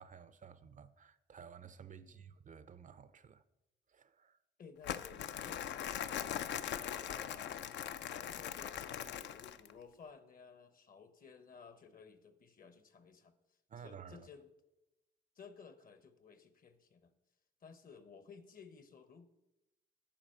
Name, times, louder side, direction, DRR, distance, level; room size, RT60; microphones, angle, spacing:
voice 1, 0.0-3.4 3.9-4.4 13.7-14.3, right 7 dB, 40° right, 0.5 m, -54 dB
voice 2, 4.6-6.3 6.8-13.3 13.8-14.5 15.4-17.1 17.6-19.3, left 5 dB, 45° left, 0.9 m, -56 dB
Crumpling crinkling, 4.8-9.7, left 9 dB, 65° left, 0.5 m, -41 dB
8.9 x 5.0 x 6.4 m
cardioid pair, 90°, 20 cm